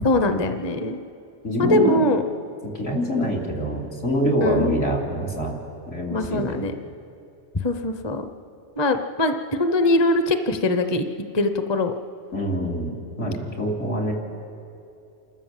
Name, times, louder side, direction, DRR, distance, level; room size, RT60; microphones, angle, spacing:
voice 1, 0.0-1.0 1.6-2.2 4.4-4.7 6.1-6.7 7.6-8.3 8.8-11.1 11.3-11.9, left 1 dB, 25° left, 8 dB, 0.7 m, -22 dB
voice 2, 1.4-2.0 2.6-5.6 5.9-6.6 12.3-14.1, equal, 80° left, -2 dB, 3.2 m, -25 dB
28.0 x 13.0 x 7.4 m, 2.6 s
omnidirectional pair, 1.2 m